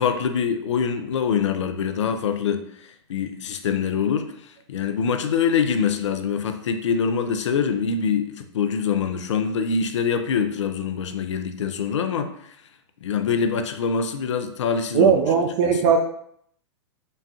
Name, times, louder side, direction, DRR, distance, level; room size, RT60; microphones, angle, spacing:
voice 1, 0.0-2.6 3.1-4.3 4.7-12.3 13.0-15.1 15.6-15.8, left 6 dB, 80° left, 8 dB, 0.5 m, -24 dB
voice 2, 14.9-16.0, right 6 dB, 50° right, 2 dB, 0.5 m, -18 dB
5.3 x 2.2 x 2.7 m, 0.68 s
hypercardioid pair, 110°, 15 cm